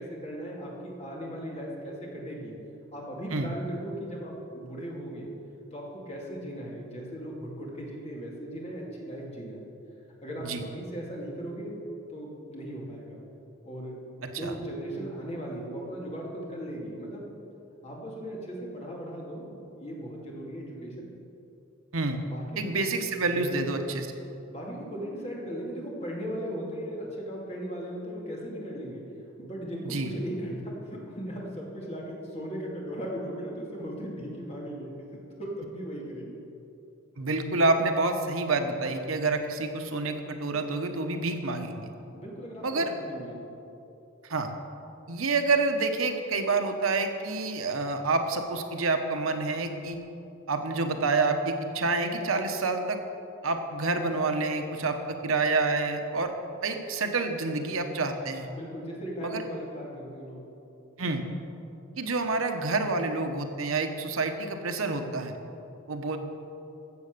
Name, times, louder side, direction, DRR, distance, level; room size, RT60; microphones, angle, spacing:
voice 1, 0.0-2.5 2.9-5.3 5.7-9.7 10.2-13.2 13.6-17.3 17.8-21.1 22.2-22.8 23.3-23.7 24.5-29.0 29.4-34.9 35.4-36.4 42.1-43.5 58.5-60.5, equal, 30° left, -3 dB, 2.5 m, -37 dB
voice 2, 14.2-14.5 21.9-22.2 22.6-24.1 29.8-30.1 37.2-41.9 42.6-42.9 44.3-44.5 45.1-50.0 50.5-53.0 53.4-56.3 56.6-58.5 59.2-59.4 61.0-61.2 62.0-65.3 65.9-66.2, right 3 dB, 80° right, 6 dB, 1.1 m, -28 dB
14.5 x 7.6 x 6.7 m, 2.8 s
head